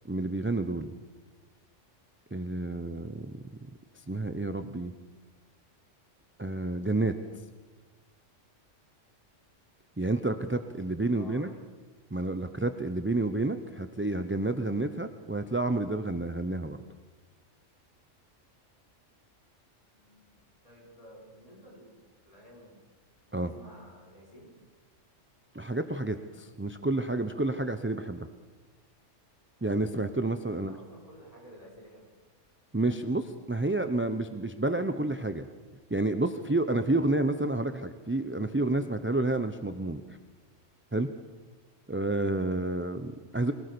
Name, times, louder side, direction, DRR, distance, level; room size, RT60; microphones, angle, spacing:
voice 1, 0.1-0.9 2.3-3.4 4.1-4.9 6.4-7.1 10.0-11.5 12.1-16.8 23.3-23.5 25.5-28.3 29.6-30.8 32.7-35.5 35.9-40.0 40.9-41.1 41.9-43.5, right 2 dB, 15° right, 9 dB, 0.6 m, -30 dB
voice 2, 11.1-11.6 19.9-22.8 23.3-24.5 30.5-32.1, equal, 30° left, -3 dB, 5.4 m, -53 dB
23.0 x 17.0 x 6.9 m, 1.3 s
omnidirectional pair, 1.3 m